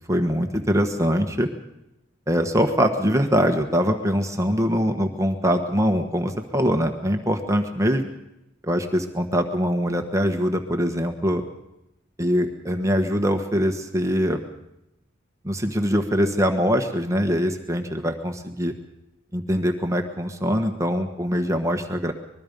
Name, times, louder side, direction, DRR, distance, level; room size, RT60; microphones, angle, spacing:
voice 1, 0.1-1.5 2.3-8.1 8.6-11.4 12.2-14.4 15.4-18.7 19.3-22.1, equal, 15° right, 5 dB, 1.3 m, -23 dB
24.5 x 21.5 x 5.3 m, 0.88 s
head